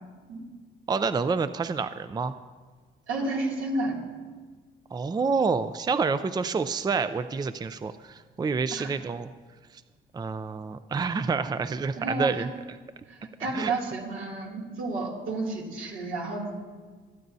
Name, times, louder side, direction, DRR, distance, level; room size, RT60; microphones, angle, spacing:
voice 1, 0.9-2.4 4.9-9.3 10.1-12.5 13.4-13.7, right 4 dB, 20° right, 12 dB, 0.4 m, -28 dB
voice 2, 3.1-4.0 8.7-8.9 12.0-12.5 13.1-16.5, right 2 dB, 85° right, -3 dB, 2.6 m, -31 dB
26.5 x 9.1 x 2.7 m, 1.5 s
cardioid pair, 90°, 20 cm